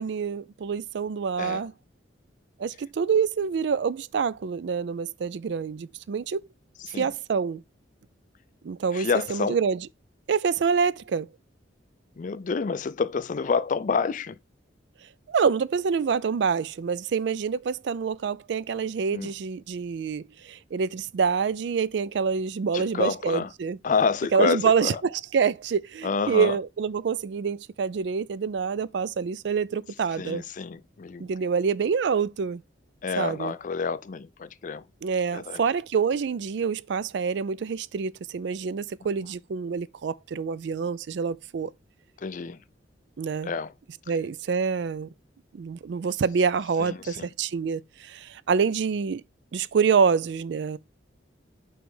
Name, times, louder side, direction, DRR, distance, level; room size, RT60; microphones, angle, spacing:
voice 1, 0.0-1.7 2.6-6.4 6.9-7.6 8.6-9.9 10.3-11.3 15.3-23.8 24.3-30.4 31.2-32.6 33.2-33.5 35.0-41.7 43.2-43.5 44.1-45.1 45.5-49.2 49.5-50.8, right 6 dB, 65° right, 0.4 m, -26 dB
voice 2, 8.9-9.6 12.2-14.4 19.1-19.3 22.7-23.5 23.8-25.0 26.0-26.6 30.2-31.3 33.0-34.8 35.3-35.6 42.2-42.6 43.4-43.7 46.9-47.3, left 5 dB, 45° left, 0.4 m, -28 dB
5.9 x 3.2 x 5.4 m
head